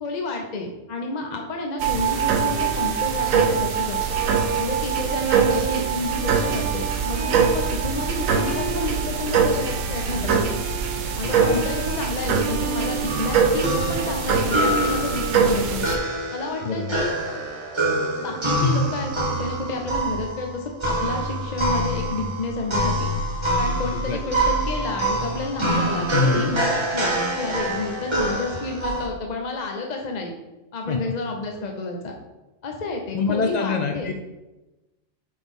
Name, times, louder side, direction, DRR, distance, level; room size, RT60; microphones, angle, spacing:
voice 1, 0.0-4.0 4.6-10.4 11.2-15.9 16.3-17.1 18.2-23.1 23.5-30.3 30.7-32.1 32.6-34.1, left 2 dB, 45° left, 2 dB, 0.6 m, -30 dB
sound 1, 1.8-16.0, right 6 dB, 85° right, 1.1 m, -23 dB
Bowed string instrument, 2.0-18.1, right 6 dB, 50° right, 0.7 m, -34 dB
voice 2, 11.2-11.6 16.6-17.0 18.6-18.9 23.9-24.2 26.1-26.5 30.9-31.0 33.1-34.1, left 4 dB, 80° left, 4 dB, 0.3 m, -25 dB
sound 2, 13.0-29.1, right 1 dB, 25° right, 0.8 m, -26 dB
6.0 x 5.1 x 3.6 m, 1.0 s
omnidirectional pair, 1.4 m